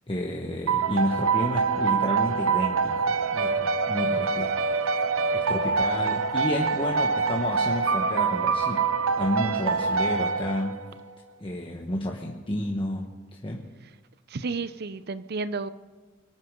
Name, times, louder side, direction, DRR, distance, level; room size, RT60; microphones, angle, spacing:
voice 1, 0.1-4.9 5.3-8.9 9.1-10.8 11.4-13.1 13.4-13.7, left 1 dB, 25° left, 0 dB, 1.1 m, -31 dB
sound 1, 0.7-11.0, right 5 dB, 85° right, 0.7 m, -25 dB
voice 2, 14.3-15.7, right 4 dB, 50° right, 14 dB, 0.6 m, -32 dB
24.5 x 9.5 x 5.3 m, 1.3 s
head